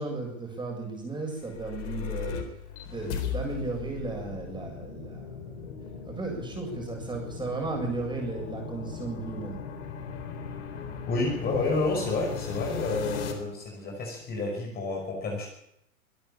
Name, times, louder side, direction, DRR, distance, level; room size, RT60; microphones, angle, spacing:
voice 1, 0.0-2.4 2.9-5.4 6.1-9.6, right 3 dB, 10° right, 1 dB, 7.6 m, -35 dB
sound 1, 1.3-13.3, left 6 dB, 50° left, 4.0 m, -37 dB
voice 2, 11.1-15.5, left 2 dB, 20° left, 1 dB, 5.5 m, -30 dB
24.5 x 12.5 x 8.7 m, 0.78 s
figure-of-eight pair, 105°, 43 cm